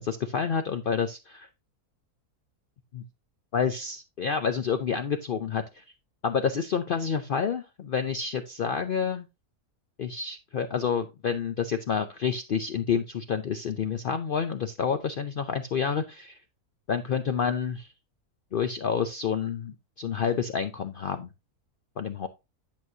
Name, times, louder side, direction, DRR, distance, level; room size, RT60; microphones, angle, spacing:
voice 1, 0.0-1.5 2.9-3.0 3.5-5.8 6.2-9.3 10.0-16.4 16.9-17.9 18.5-21.3 22.0-22.3, left 6 dB, 80° left, 9 dB, 0.4 m, -29 dB
10.5 x 6.3 x 2.7 m, 0.25 s
omnidirectional pair, 1.6 m